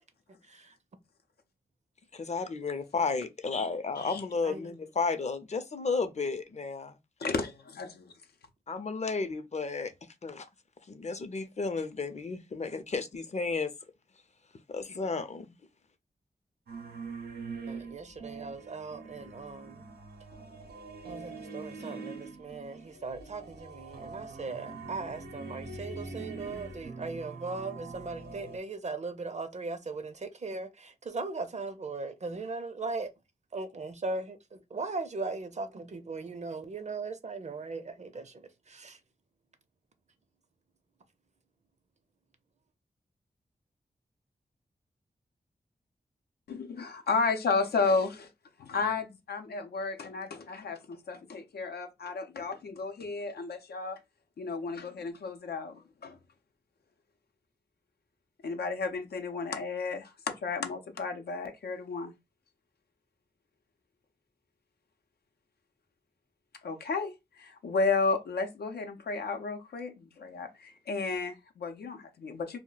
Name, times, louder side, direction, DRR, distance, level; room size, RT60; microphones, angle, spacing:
voice 1, 2.1-7.0 8.7-9.9 10.2-10.5 10.9-13.7 14.7-15.6, left 4 dB, 45° left, 0.6 m, -33 dB
voice 2, 4.4-4.8 17.7-19.9 21.0-33.1 33.5-39.0, right 3 dB, 45° right, 0.5 m, -38 dB
voice 3, 7.2-8.1 46.5-48.3 48.6-54.0 54.4-56.2 58.4-62.2 66.6-72.6, left 4 dB, 90° left, 0.6 m, -33 dB
sound 1, 16.7-28.6, right 3 dB, 90° right, 0.7 m, -44 dB
2.3 x 2.1 x 3.8 m
cardioid pair, 55°, 16 cm